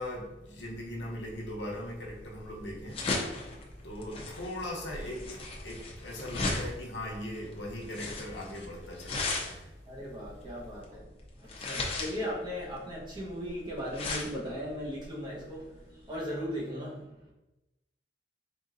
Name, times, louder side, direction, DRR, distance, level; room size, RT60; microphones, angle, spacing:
voice 1, 0.0-9.9, left 1 dB, 80° left, -1 dB, 1.0 m, -40 dB
sound 1, 1.4-16.2, left 3 dB, 35° left, 0.7 m, -37 dB
voice 2, 9.9-17.3, equal, 25° right, -5 dB, 1.1 m, -38 dB
3.8 x 3.7 x 2.6 m, 0.97 s
head